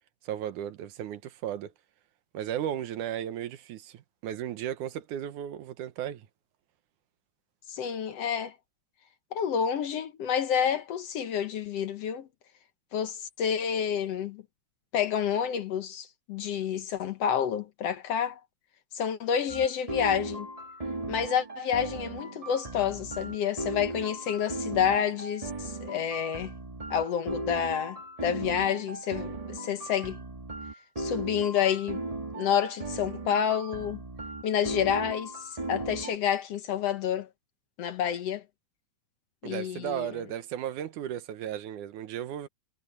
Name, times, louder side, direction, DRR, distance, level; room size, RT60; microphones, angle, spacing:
voice 1, 0.3-1.7 2.3-6.3 39.4-42.5, right 10 dB, 85° right, 2.6 m, -35 dB
voice 2, 7.7-8.5 9.3-12.3 12.9-14.4 14.9-18.4 18.9-20.5 21.1-26.5 26.9-30.2 31.0-32.0 32.3-34.0 34.4-37.3 37.8-38.4 39.4-40.2, left 8 dB, 65° left, 1.9 m, -29 dB
sound 1, 19.5-36.2, right 2 dB, 20° right, 1.0 m, -37 dB
omnidirectional pair, 3.5 m